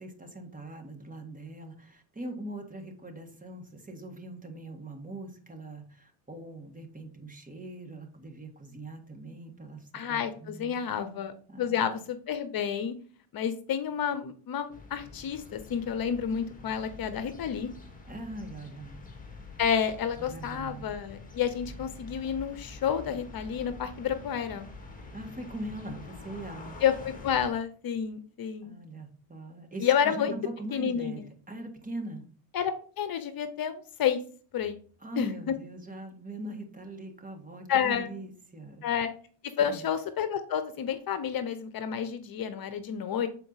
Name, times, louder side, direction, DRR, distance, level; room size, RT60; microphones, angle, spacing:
voice 1, 0.0-11.2 11.5-11.9 18.1-19.0 20.2-20.8 25.1-26.7 28.6-32.3 35.0-38.9 39.7-39.8, right 1 dB, 20° right, 3 dB, 1.7 m, -42 dB
voice 2, 9.9-12.9 13.3-17.7 19.6-24.7 26.8-28.7 29.8-30.3 30.7-31.2 32.5-34.2 34.5-34.8 35.2-35.3 37.7-38.1 38.8-39.1 39.6-43.3, left 8 dB, 55° left, 11 dB, 0.9 m, -30 dB
sound 1, 14.7-27.5, left 3 dB, 20° left, 1.8 m, -46 dB
7.4 x 4.6 x 4.0 m, 0.43 s
cardioid pair, 110°, 43 cm